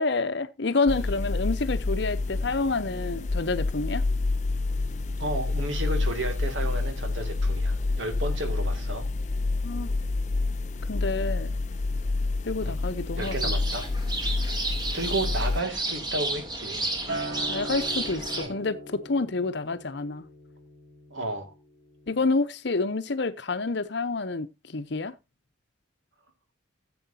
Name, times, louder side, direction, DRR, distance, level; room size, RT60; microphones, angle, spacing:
voice 1, 0.0-4.0 9.6-9.9 10.9-11.5 12.4-13.6 17.5-20.3 22.1-25.1, left 3 dB, 60° left, 0.8 m, -28 dB
sound 1, 0.9-15.6, left 3 dB, 35° left, 0.5 m, -28 dB
voice 2, 5.2-9.1 12.6-12.8 13.2-13.9 14.9-16.9 18.4-18.5 21.1-21.5, right 1 dB, 75° right, 2.3 m, -32 dB
sound 2, 13.2-18.5, right 2 dB, 20° right, 1.9 m, -32 dB
Acoustic guitar, 17.1-21.5 21.9-22.3, right 1 dB, 45° right, 5.2 m, -39 dB
14.0 x 7.9 x 2.8 m
head